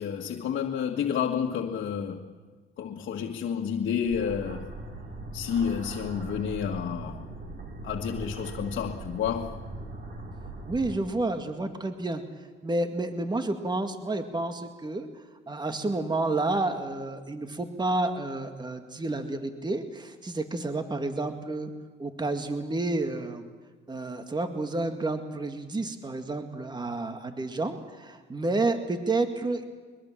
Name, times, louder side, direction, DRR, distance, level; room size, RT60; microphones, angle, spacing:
voice 1, 0.0-2.3 2.8-4.8 5.3-7.2 7.8-9.6, left 7 dB, 70° left, 1.8 m, -30 dB
sound 1, 4.0-11.0, right 2 dB, 50° right, 5.3 m, -40 dB
voice 2, 10.7-12.2 12.6-15.1 15.5-21.7 22.0-23.5 23.9-29.7, right 2 dB, 20° right, 2.1 m, -30 dB
22.5 x 22.0 x 7.5 m
cardioid pair, 90°, 20 cm